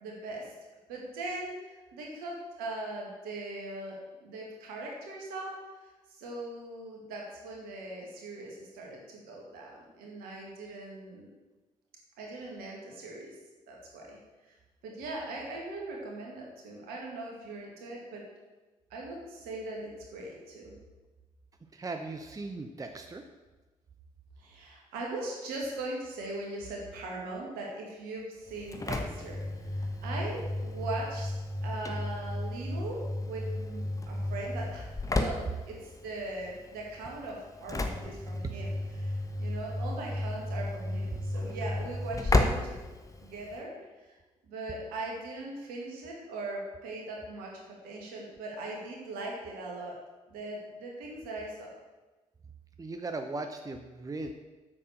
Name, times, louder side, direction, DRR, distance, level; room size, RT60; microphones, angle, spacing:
voice 1, 0.0-0.5 0.9-5.5 6.2-11.3 12.2-13.3 13.7-14.2 14.8-18.2 18.9-20.7 24.4-31.3 31.6-35.4 35.7-42.8 43.2-43.9 44.5-49.9 50.3-51.7, right 2 dB, 65° right, -1 dB, 2.2 m, -40 dB
voice 2, 21.7-23.2 38.4-38.5 52.8-54.3, right 3 dB, 20° right, 6 dB, 0.8 m, -37 dB
Engine / Slam, 28.5-43.6, left 2 dB, 20° left, 1.2 m, -33 dB
8.6 x 6.9 x 6.4 m, 1.2 s
figure-of-eight pair, 40°, 16 cm